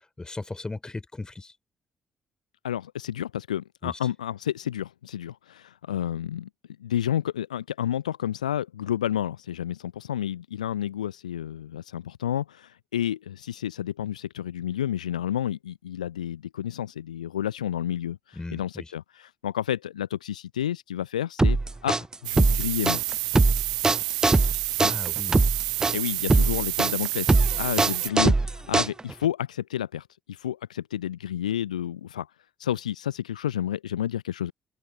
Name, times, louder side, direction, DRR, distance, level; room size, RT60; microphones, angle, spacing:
voice 1, 0.2-1.5 3.8-4.0 18.3-18.9 24.8-25.4, left 2 dB, 20° left, 3.1 m, -36 dB
voice 2, 2.6-6.5 6.8-23.0 24.8-25.0 25.9-32.3 32.6-34.5, left 10 dB, 80° left, 0.5 m, -30 dB
sound 1, 21.4-29.3, right 3 dB, 15° right, 0.4 m, -21 dB
sound 2, 22.2-28.1, right 20 dB, 75° right, 0.9 m, -29 dB
open air
figure-of-eight pair, 45°, 4 cm